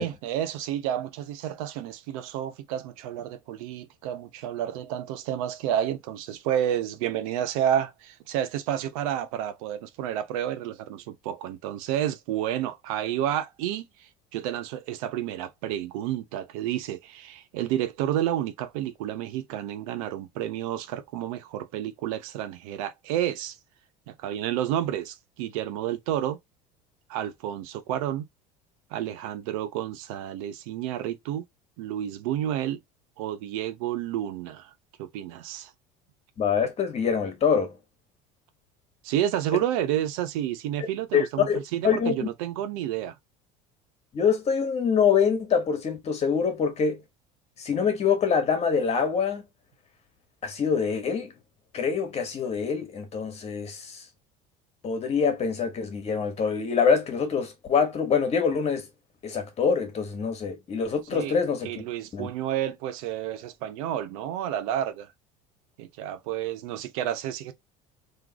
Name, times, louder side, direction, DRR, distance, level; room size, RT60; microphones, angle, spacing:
voice 1, 0.0-23.6 24.1-26.4 27.1-28.3 28.9-31.4 31.8-32.8 33.2-34.7 35.0-35.7 39.0-43.1 61.1-61.4 61.6-65.1 65.8-67.5, right 11 dB, 85° right, 0.9 m, -30 dB
voice 2, 36.4-37.7 41.1-41.6 41.8-42.3 44.1-47.0 47.6-49.4 50.4-51.3 51.7-54.0 54.8-58.9 59.2-61.8 62.1-62.3, left 6 dB, 40° left, 1.8 m, -25 dB
3.8 x 3.3 x 3.0 m
supercardioid pair, 110°, 17 cm